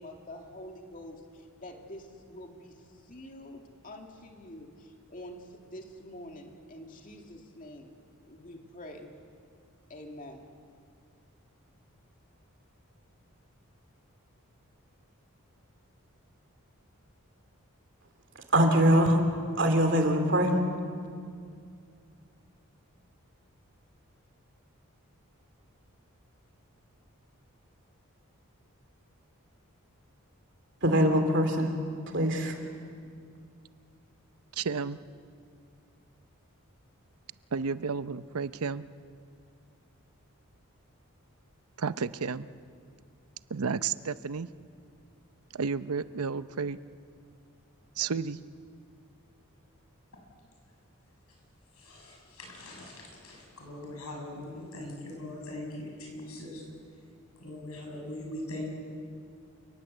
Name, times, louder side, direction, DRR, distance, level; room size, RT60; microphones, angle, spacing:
voice 1, 0.0-7.9 8.3-9.1 9.9-10.5, left 1 dB, 35° left, 2 dB, 2.4 m, -46 dB
voice 2, 18.3-19.2 19.6-20.6 30.8-31.7 32.1-32.6, equal, 55° right, 5 dB, 2.9 m, -23 dB
voice 3, 34.5-35.0 37.5-38.8 41.8-42.5 43.5-44.5 45.5-46.8 48.0-48.4, right 5 dB, 90° right, 14 dB, 0.7 m, -32 dB
voice 4, 51.8-56.6 57.4-58.6, left 1 dB, 85° left, 0 dB, 7.7 m, -41 dB
29.0 x 18.5 x 8.0 m, 2.3 s
head